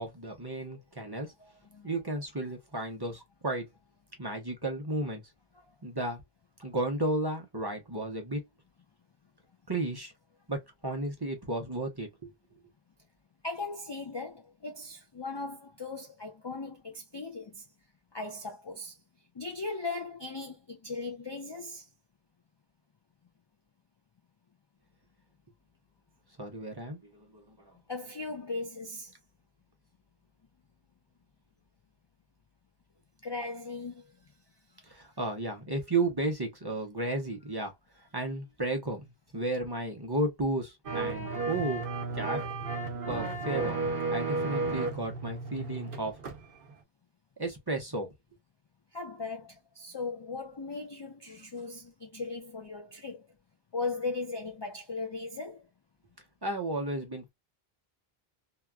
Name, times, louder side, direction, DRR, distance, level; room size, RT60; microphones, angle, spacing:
voice 1, 0.0-1.3 1.8-3.7 4.2-5.2 5.8-6.2 6.6-8.4 9.7-10.1 10.5-12.3 26.4-27.5 34.9-37.7 38.1-41.8 42.1-42.4 43.1-43.8 44.1-46.2 47.4-48.1 56.4-57.3, right 2 dB, 25° right, 0.7 m, -33 dB
voice 2, 1.4-1.9 5.5-5.7 13.4-17.6 18.1-19.0 19.3-21.9 27.9-29.1 33.2-34.1 48.9-53.3 53.7-55.7, left 3 dB, 40° left, 0.3 m, -38 dB
sound 1, 40.8-46.4 46.7-46.8, right 3 dB, 60° right, 0.9 m, -33 dB
2.9 x 2.3 x 2.2 m
omnidirectional pair, 1.0 m